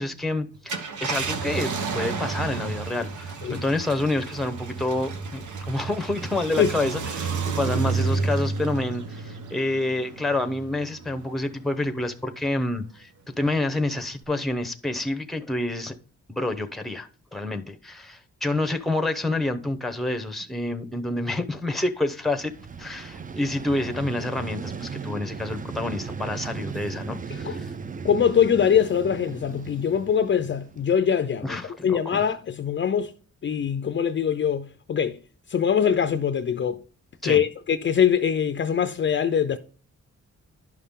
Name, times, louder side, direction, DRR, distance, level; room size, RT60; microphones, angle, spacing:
voice 1, 0.0-13.1 13.4-15.9 16.3-22.5 22.8-27.7 31.4-32.2 37.2-37.4, left 2 dB, ahead, 0.7 m, -28 dB
Car, 0.5-11.4 11.9-12.0 14.0-14.2, right 4 dB, 85° right, 1.0 m, -31 dB
Vehicle, 22.2-31.2, right 5 dB, 30° right, 0.4 m, -37 dB
voice 2, 28.0-33.1 33.4-35.2 35.5-36.8 37.2-39.6, left 8 dB, 40° left, 0.4 m, -23 dB
11.0 x 5.6 x 3.6 m
wide cardioid pair, 135°, 29 cm